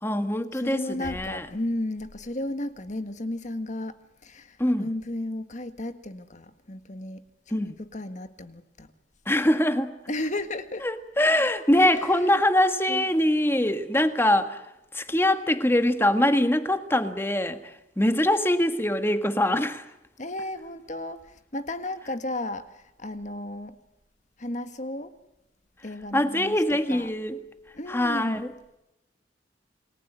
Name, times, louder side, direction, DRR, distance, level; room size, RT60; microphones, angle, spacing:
voice 1, 0.0-1.5 4.6-4.9 7.5-7.7 9.2-9.9 10.8-14.7 14.9-19.9 26.1-27.4 27.9-28.5, left 1 dB, 15° left, 1.6 m, -23 dB
voice 2, 0.5-8.9 10.1-10.9 11.7-12.4 12.9-13.1 20.2-23.7 24.4-25.2 25.8-27.1 27.7-28.4, left 1 dB, 40° left, 1.7 m, -34 dB
29.0 x 20.0 x 9.3 m
head